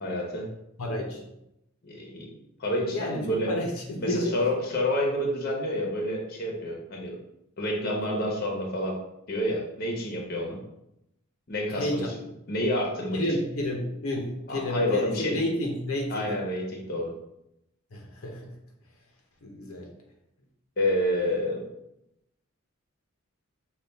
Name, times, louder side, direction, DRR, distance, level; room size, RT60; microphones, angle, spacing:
voice 1, 0.0-0.5 1.8-2.3 2.6-3.5 4.0-7.2 7.6-9.0 9.3-10.6 11.5-12.0 12.5-13.2 14.5-15.4 16.1-17.1 20.8-21.6, left 1 dB, 45° left, 0 dB, 0.9 m, -28 dB
voice 2, 0.8-1.3 2.9-4.3 11.7-12.1 13.1-16.2 17.9-18.5 19.4-19.9, left 1 dB, 80° left, 1 dB, 0.7 m, -30 dB
5.4 x 2.4 x 3.4 m, 0.83 s
head